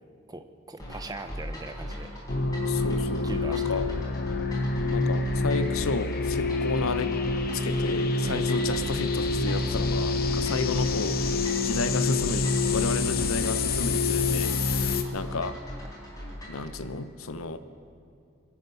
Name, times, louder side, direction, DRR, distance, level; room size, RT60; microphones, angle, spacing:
voice 1, 0.3-2.1 3.2-3.8 8.2-8.5 10.4-10.6 14.8-15.0, right 2 dB, 20° right, 8 dB, 0.6 m, -40 dB
sound 1, 0.8-16.7, equal, 15° left, 4.0 m, -39 dB
sound 2, 2.3-15.0, left 3 dB, 45° left, 0.8 m, -27 dB
voice 2, 2.7-3.9 4.9-7.1 7.5-15.6 16.5-17.6, left 3 dB, 75° left, 11 dB, 0.8 m, -32 dB
25.0 x 8.8 x 5.6 m, 2.4 s
head